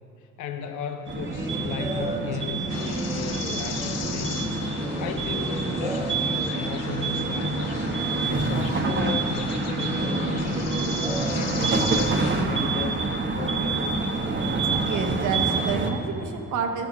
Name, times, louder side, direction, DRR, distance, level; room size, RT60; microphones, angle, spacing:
voice 1, 0.2-4.5 5.0-7.8 8.3-10.8 11.3-14.3, left 7 dB, 80° left, 7 dB, 0.8 m, -36 dB
sound 1, 1.1-12.2, equal, 10° right, 1.1 m, -34 dB
sound 2, 1.1-15.9, right 3 dB, 40° right, 1.1 m, -27 dB
sound 3, 2.7-12.5, left 5 dB, 60° left, 0.9 m, -37 dB
voice 2, 14.8-16.9, right 6 dB, 85° right, 4 dB, 1.1 m, -29 dB
14.0 x 14.0 x 2.7 m, 2.9 s
cardioid pair, 90°, 30 cm